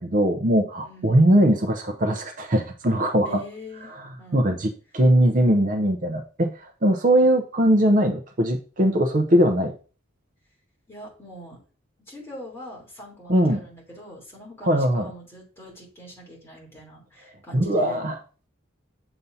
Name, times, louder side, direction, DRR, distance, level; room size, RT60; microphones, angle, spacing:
voice 1, 0.0-3.4 4.3-9.7 13.3-13.6 14.6-15.1 17.5-18.2, right 1 dB, 40° right, 5 dB, 0.6 m, -20 dB
voice 2, 0.8-1.2 3.2-3.9 4.2-4.5 7.2-7.3 10.9-11.6 12.1-18.1, equal, 10° left, -4 dB, 3.3 m, -43 dB
7.0 x 6.9 x 2.7 m, 0.38 s
head